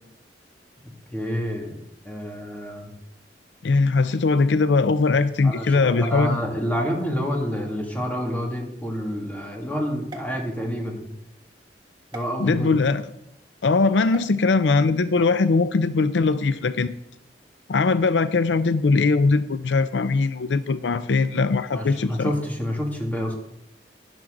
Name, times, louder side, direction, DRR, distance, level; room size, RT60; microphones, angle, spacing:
voice 1, 1.1-1.8 2.0-2.9 5.4-11.1 12.1-12.7 21.7-23.3, equal, 10° left, 0 dB, 2.2 m, -28 dB
voice 2, 3.6-6.4 12.4-13.0 13.6-16.9 17.7-22.3, left 3 dB, 85° left, 13 dB, 0.5 m, -20 dB
sound 1, 10.0-11.1 12.1-12.3 14.1-14.3, right 1 dB, 25° right, 1.6 m, -43 dB
12.0 x 10.5 x 3.8 m, 0.80 s
head